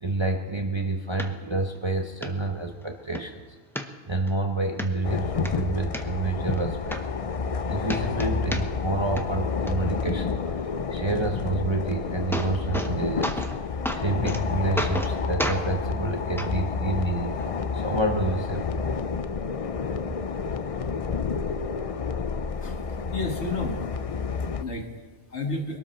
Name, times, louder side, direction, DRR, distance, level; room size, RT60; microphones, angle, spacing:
voice 1, 0.0-3.5 4.1-7.0 7.7-10.4 10.9-13.4 13.7-18.8, right 2 dB, 25° right, 2 dB, 0.9 m, -28 dB
sound 1, 1.2-1.3 1.7-1.8 2.2-2.3 2.8-3.2 3.7-4.3 4.8-4.9 5.3-6.0 6.6-6.7 6.9-7.6 7.8-8.9 9.2-9.7 11.7-11.8 12.1-12.9 13.2-13.6 13.8-14.4 14.8-15.1 15.4-15.6 16.4-16.5 17.4-17.5, equal, ahead, 0.7 m, -31 dB
sound 2, 5.0-24.6, left 5 dB, 45° left, 0.4 m, -30 dB
voice 2, 22.6-23.9 24.3-25.8, left 2 dB, 65° left, 3 dB, 1.8 m, -33 dB
21.5 x 12.5 x 4.4 m, 1.4 s
omnidirectional pair, 1.2 m